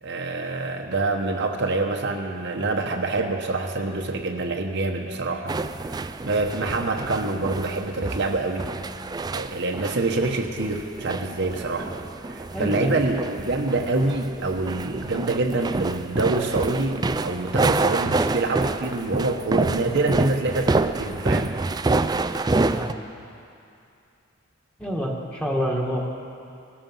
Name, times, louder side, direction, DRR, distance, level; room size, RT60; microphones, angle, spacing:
voice 1, 0.0-8.7 9.3-11.9 12.2-21.5, right 2 dB, 60° right, 3 dB, 1.0 m, -26 dB
sound 1, 5.5-22.9, right 3 dB, 20° right, 0.3 m, -27 dB
voice 2, 12.5-13.1 22.6-23.0 24.8-26.1, equal, 5° left, -1 dB, 1.7 m, -28 dB
19.0 x 13.0 x 5.5 m, 2.6 s
head